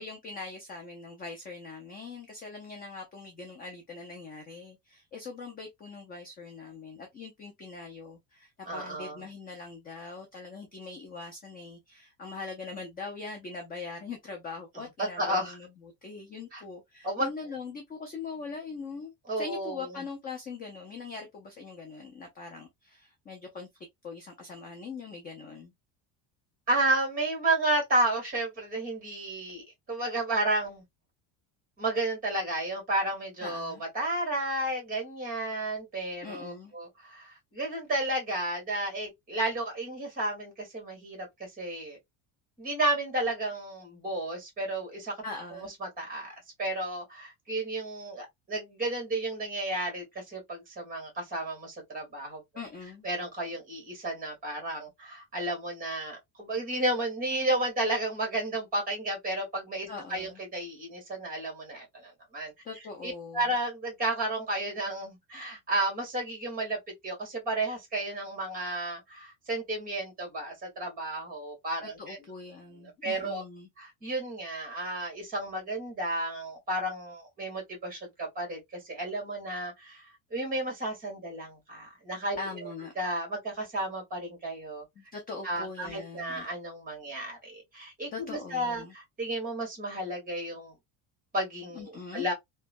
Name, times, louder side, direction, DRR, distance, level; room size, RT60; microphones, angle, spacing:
voice 1, 0.0-23.7 24.0-25.7 33.4-33.8 36.2-36.7 45.2-45.7 52.5-53.1 59.9-60.4 62.6-63.5 71.8-73.7 82.4-82.9 85.0-86.5 88.1-88.9 91.7-92.3, left 4 dB, 25° left, 0.3 m, -42 dB
voice 2, 8.7-9.2 15.0-15.6 16.5-16.6 17.0-17.3 19.3-19.9 26.7-30.8 31.8-42.0 42.6-45.1 45.8-46.3 46.6-52.4 53.0-62.5 63.0-66.8 67.0-72.2 72.7-73.4 73.8-82.6 83.0-84.8 85.4-90.7 91.3-92.3, right 1 dB, 20° right, 1.6 m, -32 dB
3.0 x 2.2 x 2.4 m
cardioid pair, 165°, 43 cm